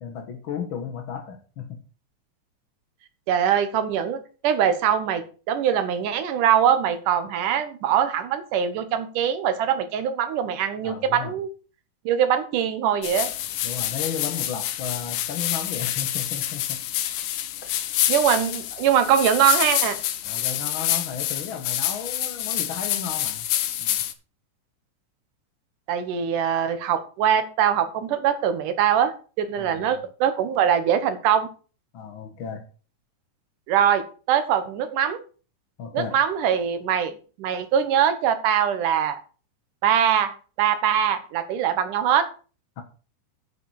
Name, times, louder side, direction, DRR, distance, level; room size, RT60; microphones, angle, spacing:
voice 1, 0.0-1.8 10.8-11.3 13.6-16.8 20.2-23.4 23.8-24.0 29.6-30.0 31.9-32.6 35.8-36.2 42.8-42.9, left 7 dB, 55° left, 4 dB, 1.6 m, -34 dB
voice 2, 3.3-11.5 12.1-13.3 18.1-20.0 25.9-31.5 33.7-35.2 35.9-39.2 39.8-40.3 40.6-42.3, right 9 dB, 85° right, 10 dB, 2.8 m, -22 dB
sound 1, 13.0-24.1, left 12 dB, 85° left, 2.4 m, -27 dB
8.8 x 8.3 x 4.8 m, 0.36 s
omnidirectional pair, 3.6 m